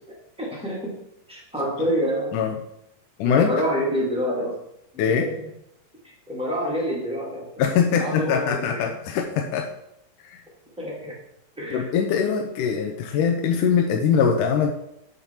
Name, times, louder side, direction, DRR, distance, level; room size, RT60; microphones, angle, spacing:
voice 1, 0.4-1.0 1.3-2.4 3.2-4.6 4.9-5.5 6.0-7.5 7.9-8.9 10.8-11.1 11.6-11.9, equal, 5° right, -4 dB, 0.8 m, -27 dB
voice 2, 3.2-3.5 5.0-5.3 7.6-9.7 10.2-10.4 11.7-14.7, left 7 dB, 75° left, 2 dB, 2.1 m, -22 dB
7.5 x 6.7 x 4.3 m, 0.78 s
omnidirectional pair, 4.0 m